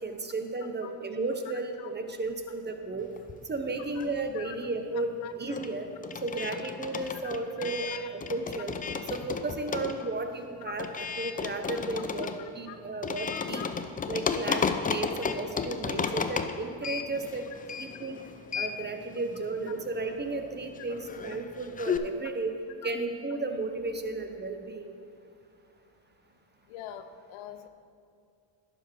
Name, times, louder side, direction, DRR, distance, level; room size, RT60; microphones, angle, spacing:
voice 1, 0.0-3.1 3.5-5.9 6.2-8.7 9.1-10.9 11.2-13.6 14.1-17.4 17.8-18.2 18.5-22.5 22.8-24.9, right 3 dB, 20° right, 6 dB, 0.8 m, -34 dB
sound 1, 3.2-4.4 4.7-22.0, left 6 dB, 20° left, 0.3 m, -34 dB
voice 2, 4.9-5.3 7.2-8.1 12.4-12.8 13.3-13.7 22.8-22.9 26.7-27.7, left 11 dB, 85° left, 9 dB, 0.7 m, -44 dB
11.0 x 5.2 x 4.8 m, 2.4 s
supercardioid pair, 75°, 46 cm